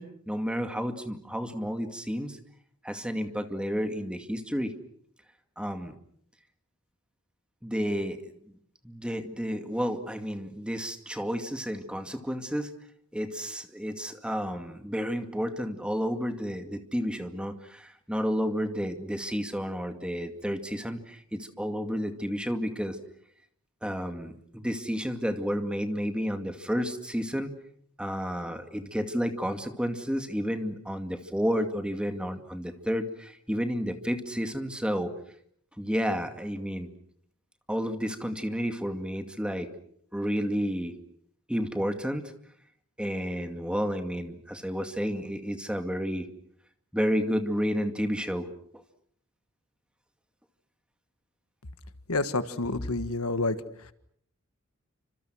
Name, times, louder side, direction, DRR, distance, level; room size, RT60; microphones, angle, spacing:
voice 1, 0.0-2.4 2.8-4.7 5.6-6.0 7.6-8.2 8.8-12.7 13.1-23.0 23.8-27.5 28.0-35.1 35.8-36.9 37.7-39.7 40.1-40.9 41.5-42.3 43.0-46.3 46.9-48.5 48.7-48.8, equal, 5° right, 7 dB, 2.2 m, -31 dB
voice 2, 52.1-53.6, left 2 dB, 75° left, 12 dB, 1.6 m, -28 dB
30.0 x 26.5 x 6.3 m, 0.66 s
head